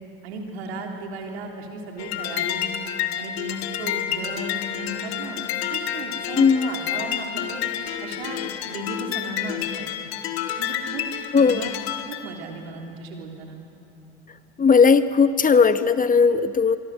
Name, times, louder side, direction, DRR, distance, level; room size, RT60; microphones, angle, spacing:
voice 1, 0.2-2.7 3.2-5.4 5.7-7.6 8.0-9.9 10.6-11.0 11.3-11.8 12.1-13.6, right 3 dB, 80° right, 2 dB, 3.3 m, -35 dB
sound 1, 2.0-12.2, left 10 dB, 80° left, 1.6 m, -29 dB
voice 2, 6.4-6.7 11.3-11.6 14.6-16.8, left 5 dB, 25° left, 12 dB, 1.1 m, -17 dB
25.0 x 24.5 x 6.5 m, 2.9 s
hypercardioid pair, 75°, 31 cm